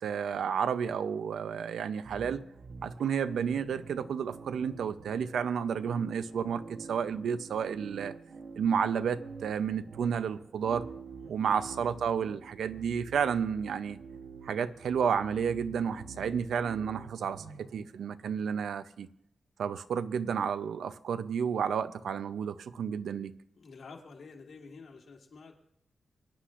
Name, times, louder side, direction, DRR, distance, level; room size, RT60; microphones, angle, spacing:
voice 1, 0.0-2.5 2.8-8.1 8.6-10.9 11.3-14.0 14.4-19.1 19.6-23.3, right 7 dB, 85° right, 11 dB, 0.6 m, -31 dB
sound 1, 2.0-18.7, right 5 dB, 60° right, 1.0 m, -48 dB
voice 2, 23.5-25.6, left 4 dB, 60° left, 1 dB, 2.1 m, -50 dB
23.0 x 9.9 x 2.5 m, 0.72 s
wide cardioid pair, 135°, 0 cm